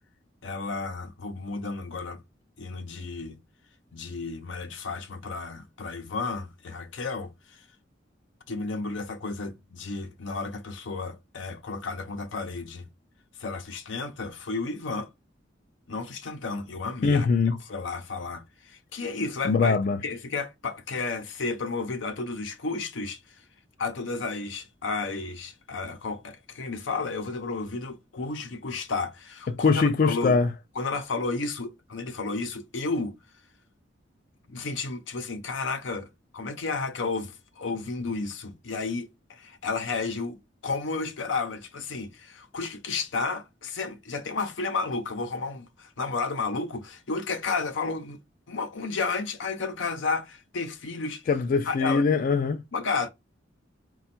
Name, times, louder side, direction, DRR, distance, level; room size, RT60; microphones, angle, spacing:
voice 1, 0.4-2.2 2.6-3.4 3.9-7.6 8.5-12.9 13.4-15.1 15.9-17.3 17.7-19.8 20.0-23.2 23.8-30.4 30.8-33.2 34.5-36.1 36.3-48.2 48.5-51.2 51.7-52.0 52.7-53.1, left 4 dB, 85° left, 0.7 m, -32 dB
voice 2, 17.0-17.6 19.4-20.0 29.5-30.5 51.3-52.6, left 4 dB, 50° left, 0.3 m, -22 dB
4.2 x 2.3 x 4.2 m
head